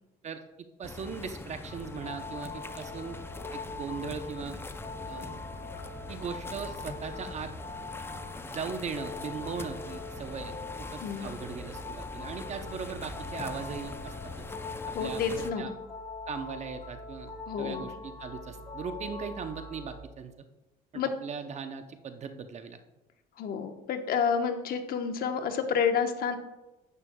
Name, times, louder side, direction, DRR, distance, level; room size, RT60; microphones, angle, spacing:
sound 1, 0.8-15.5, left 3 dB, 15° left, 0.5 m, -43 dB
voice 1, 0.8-3.2 3.5-4.6 5.1-5.4 6.1-7.5 8.5-14.4 15.0-15.7 16.3-17.3 17.6-20.3 20.9-22.8, right 6 dB, 40° right, 8 dB, 0.6 m, -39 dB
sound 2, 1.7-20.0, left 3 dB, 35° left, 1.7 m, -42 dB
voice 2, 11.0-11.3 14.9-15.7 17.5-17.9 20.9-21.1 23.4-26.4, left 6 dB, 60° left, 6 dB, 1.0 m, -29 dB
11.0 x 8.6 x 2.2 m, 1.0 s
cardioid pair, 110°, 17 cm